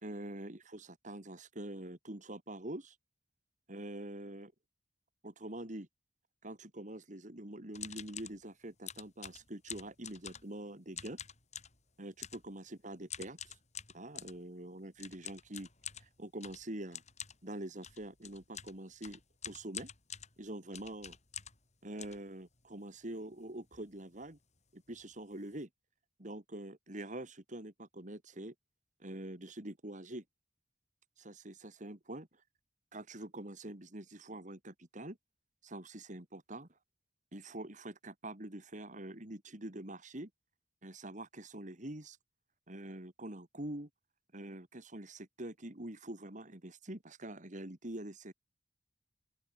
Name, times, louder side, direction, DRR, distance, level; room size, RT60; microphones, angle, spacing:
voice 1, 0.0-2.9 3.7-4.5 5.2-5.9 6.4-11.2 12.0-13.5 13.9-15.7 16.0-17.0 17.4-19.2 19.4-19.9 20.4-21.2 21.8-24.4 24.7-25.7 26.2-28.5 29.0-30.2 31.2-32.3 32.9-35.2 35.6-36.7 37.3-40.3 40.8-42.2 42.7-43.9 44.3-48.3, right 1 dB, 45° right, 3.0 m, -45 dB
sound 1, 7.7-8.4 8.9-10.6 10.9-11.8 12.2-12.5 13.1-14.4 15.0-21.7 22.0-22.8 23.3-23.4 23.6-23.9 24.2-24.4 24.9-25.0 25.3-25.6, left 9 dB, 40° left, 7.1 m, -47 dB
open air
head